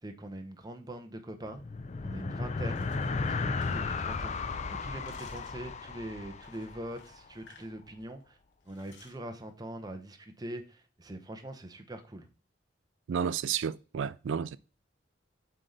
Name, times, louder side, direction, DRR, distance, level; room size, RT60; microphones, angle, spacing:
voice 1, 0.0-1.6 2.0-8.4 8.7-12.3, right 1 dB, 20° right, 0.7 m, -43 dB
sound 1, 1.5-7.2, left 4 dB, 35° left, 0.4 m, -34 dB
sound 2, 2.7-4.5 4.8-5.7 6.4-7.7 8.0-8.2 8.7-9.2, left 4 dB, 65° left, 1.1 m, -58 dB
voice 2, 13.1-14.6, right 7 dB, 75° right, 0.3 m, -31 dB
7.6 x 3.3 x 3.9 m
head